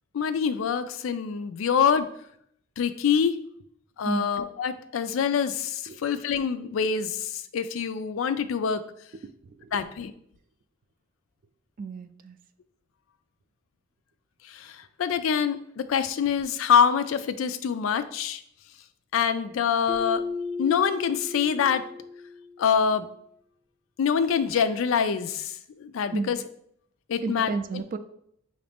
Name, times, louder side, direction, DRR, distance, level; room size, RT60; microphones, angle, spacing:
voice 1, 0.1-2.1 2.8-3.4 4.0-8.8 9.7-10.1 14.5-18.4 19.1-20.2 20.6-21.8 22.6-23.1 24.0-26.4 27.1-27.5, left 7 dB, 85° left, 11 dB, 0.4 m, -25 dB
voice 2, 11.8-12.4 26.1-26.4 27.2-28.0, right 4 dB, 45° right, 10 dB, 0.3 m, -32 dB
Keyboard (musical), 19.9-22.7, left 3 dB, ahead, 0.6 m, -35 dB
5.7 x 2.6 x 3.4 m, 0.69 s
head